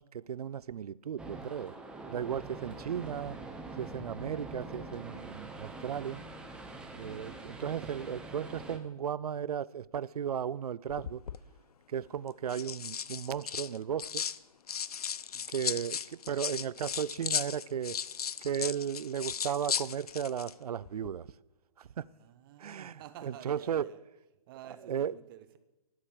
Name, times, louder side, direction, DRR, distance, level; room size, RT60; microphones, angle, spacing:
voice 1, 0.0-1.7 2.1-3.4 3.8-6.2 6.9-11.2 11.9-14.2 15.5-18.0 18.4-21.3 21.8-22.1 22.6-22.9 23.2-23.9 24.9-25.1, right 8 dB, 75° right, 0.4 m, -35 dB
sound 1, 1.2-8.8, right 2 dB, 5° right, 0.8 m, -44 dB
sound 2, 10.9-11.4 12.3-14.4 14.7-20.5 20.8-21.1, left 8 dB, 75° left, 0.5 m, -36 dB
voice 2, 15.3-15.8 22.1-24.0 24.5-25.6, right 11 dB, 35° right, 0.8 m, -51 dB
12.0 x 5.0 x 7.5 m
figure-of-eight pair, 130°, 19 cm